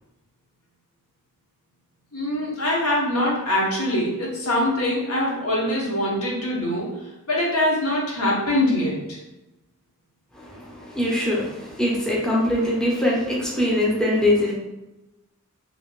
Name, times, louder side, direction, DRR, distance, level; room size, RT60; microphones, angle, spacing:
voice 1, 2.1-6.9 7.3-9.2, left 1 dB, 70° left, -4 dB, 1.0 m, -23 dB
voice 2, 10.3-14.5, left 1 dB, 5° left, -5 dB, 0.6 m, -22 dB
2.8 x 2.7 x 3.0 m, 0.96 s
head